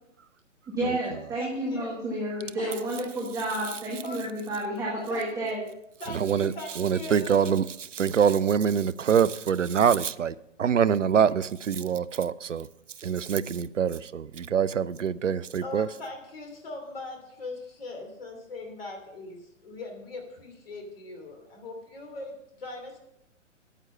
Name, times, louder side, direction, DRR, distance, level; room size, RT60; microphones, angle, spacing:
voice 1, 0.8-5.6, right 1 dB, 10° right, 1.4 m, -30 dB
voice 2, 1.4-2.0 2.6-2.8 4.0-4.2 5.1-5.3 6.0-7.6 15.6-23.0, left 2 dB, 50° left, 3.0 m, -40 dB
voice 3, 6.1-12.7 13.0-15.9, right 7 dB, 75° right, 0.5 m, -25 dB
9.0 x 7.9 x 5.5 m
figure-of-eight pair, 125°, 38 cm